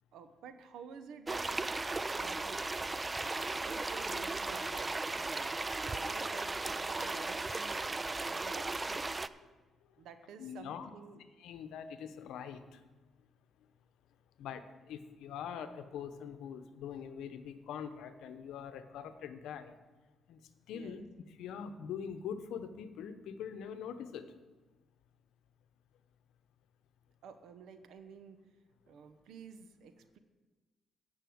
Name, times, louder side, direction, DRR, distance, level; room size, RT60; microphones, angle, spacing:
voice 1, 0.1-1.6 2.2-7.9 8.1-9.1 10.0-11.2 20.7-21.0 27.2-28.4 28.9-30.2, right 6 dB, 80° right, 9 dB, 0.9 m, -51 dB
sound 1, 1.3-9.3, right 3 dB, 20° right, 0.4 m, -36 dB
voice 2, 10.4-10.9 11.4-12.8 14.4-19.8 20.3-20.4 20.7-21.0 21.3-24.2, left 7 dB, 85° left, 10 dB, 0.8 m, -43 dB
10.0 x 5.5 x 7.8 m, 1.2 s
cardioid pair, 90°, 0 cm